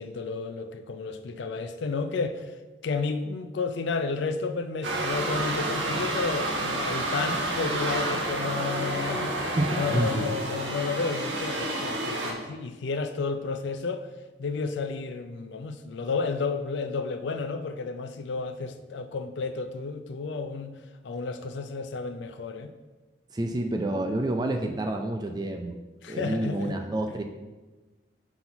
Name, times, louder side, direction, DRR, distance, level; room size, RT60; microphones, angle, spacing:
voice 1, 0.0-2.5 2.8-14.1 14.4-20.7 21.0-22.7 26.0-26.7, left 4 dB, 75° left, 8 dB, 0.4 m, -32 dB
sound 1, 4.8-12.3, right 1 dB, 85° right, 1.2 m, -29 dB
voice 2, 9.6-10.2 23.3-25.8 26.1-27.2, right 1 dB, 20° right, 4 dB, 0.4 m, -28 dB
6.0 x 4.0 x 5.7 m, 1.2 s
head